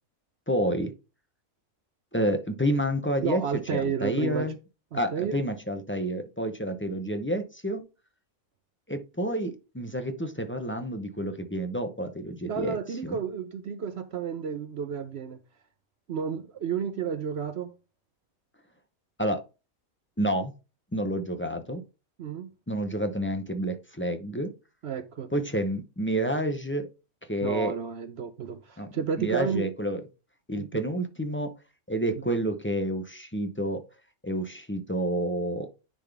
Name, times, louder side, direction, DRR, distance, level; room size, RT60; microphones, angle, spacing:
voice 1, 0.5-0.9 2.1-3.4 3.7-4.5 4.9-7.8 8.9-12.8 13.0-13.2 19.2-19.4 20.2-20.5 20.9-21.8 22.7-24.5 25.3-26.9 27.3-27.7 28.8-28.9 29.2-30.0 30.5-31.5 31.9-33.8 34.2-35.7, right 1 dB, 15° left, 0.4 m, -29 dB
voice 2, 3.2-4.5 4.9-5.4 12.5-15.4 16.1-17.7 22.2-22.5 24.8-25.3 27.4-29.7 30.6-30.8, right 7 dB, 60° right, 0.8 m, -31 dB
10.0 x 4.0 x 3.4 m
omnidirectional pair, 1.5 m